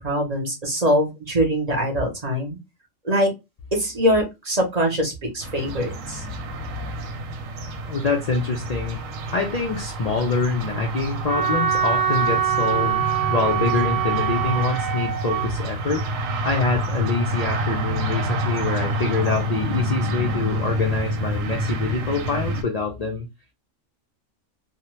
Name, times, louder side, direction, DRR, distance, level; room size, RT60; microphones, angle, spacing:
voice 1, 0.0-2.6 3.0-3.3 3.7-6.2, equal, 35° right, 0.8 m, -23 dB
sound 1, 5.4-22.6, right 1 dB, 90° right, 1.0 m, -28 dB
voice 2, 7.9-9.0 9.3-16.0 16.4-23.3, left 4 dB, 80° left, 0.3 m, -25 dB
Wind instrument woodwind instrument, 11.3-15.5, right 9 dB, 55° right, 1.0 m, -24 dB
2.7 x 2.2 x 3.0 m
omnidirectional pair, 1.3 m